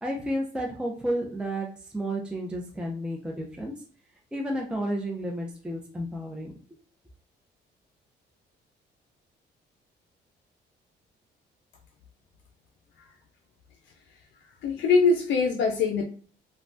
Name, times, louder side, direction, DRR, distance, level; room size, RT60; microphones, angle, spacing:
voice 1, 0.0-1.7 1.9-3.7 4.3-6.5, equal, 5° right, -1 dB, 0.5 m, -31 dB
voice 2, 14.6-16.0, left 4 dB, 70° left, 2 dB, 0.5 m, -22 dB
3.2 x 2.2 x 2.6 m, 0.43 s
cardioid pair, 85°, 19 cm